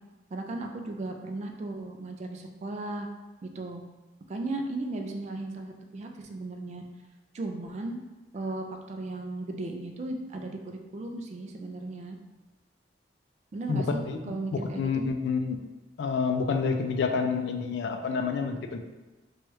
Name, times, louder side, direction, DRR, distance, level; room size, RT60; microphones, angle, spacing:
voice 1, 0.3-3.1 3.4-3.8 4.3-6.8 7.3-8.0 8.3-12.2 13.5-14.0 14.3-15.1, right 2 dB, 40° right, 3 dB, 0.3 m, -36 dB
voice 2, 13.7-15.6 16.0-18.8, left 5 dB, 70° left, 6 dB, 0.3 m, -28 dB
3.0 x 2.3 x 3.0 m, 1.1 s
head